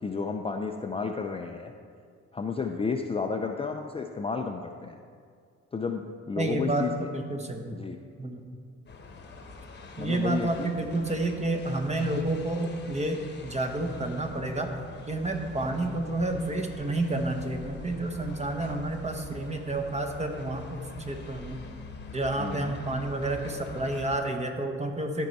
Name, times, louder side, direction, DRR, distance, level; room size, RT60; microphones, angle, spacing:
voice 1, 0.0-1.7 2.3-5.0 5.7-7.1 7.7-8.0 10.0-10.7 22.4-22.7, left 5 dB, 20° left, 3 dB, 0.4 m, -32 dB
voice 2, 6.4-7.8 8.2-8.4 10.0-14.7 15.1-21.6 22.1-25.3, right 2 dB, 20° right, 4 dB, 1.0 m, -30 dB
sound 1, 8.9-24.2, left 4 dB, 35° left, 1.0 m, -44 dB
13.5 x 4.6 x 4.1 m, 2.2 s
cardioid pair, 90°, 30 cm